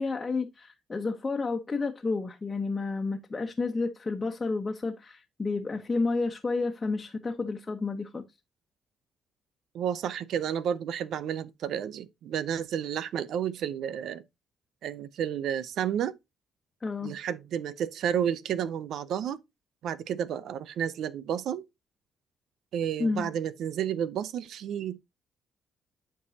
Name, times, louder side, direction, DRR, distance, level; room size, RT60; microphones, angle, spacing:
voice 1, 0.0-8.2 16.8-17.1 23.0-23.3, left 3 dB, 25° left, 1.1 m, -31 dB
voice 2, 9.7-14.2 14.8-16.1 17.0-19.4 19.8-21.6 22.7-25.0, right 9 dB, 75° right, 0.5 m, -31 dB
11.0 x 4.6 x 2.8 m
cardioid pair, 90°, 0 cm